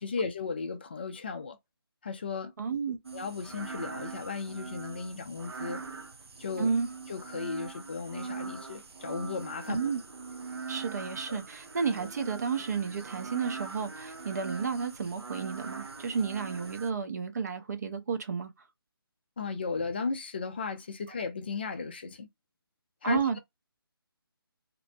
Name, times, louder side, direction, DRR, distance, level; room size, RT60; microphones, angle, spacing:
voice 1, 0.0-1.6 2.0-2.5 3.1-5.8 6.4-6.7 7.1-9.8 11.3-11.4 19.4-22.3 23.0-23.4, left 4 dB, 25° left, 0.3 m, -35 dB
voice 2, 2.6-3.0 6.6-6.9 9.7-10.0 10.7-18.5 23.0-23.4, right 5 dB, 45° right, 0.6 m, -32 dB
sound 1, 3.0-16.9, right 5 dB, 85° right, 0.6 m, -42 dB
2.6 x 2.0 x 2.6 m
figure-of-eight pair, 165°, 13 cm